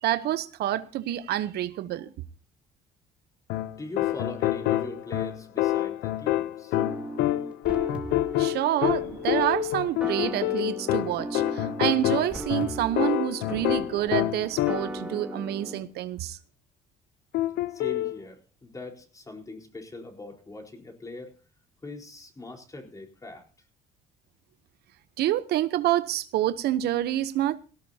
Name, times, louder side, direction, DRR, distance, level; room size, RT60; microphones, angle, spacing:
voice 1, 0.0-2.1 8.4-16.4 25.2-27.6, right 13 dB, 70° right, 0.9 m, -27 dB
sound 1, 3.5-15.1 17.3-18.2, left 15 dB, 80° left, 0.8 m, -27 dB
voice 2, 3.8-6.8 17.7-21.3 21.8-23.4, left 2 dB, 20° left, 4.2 m, -41 dB
sound 2, 6.7-15.8, right 1 dB, 5° right, 2.6 m, -38 dB
17.5 x 17.5 x 2.8 m
cardioid pair, 110°, 17 cm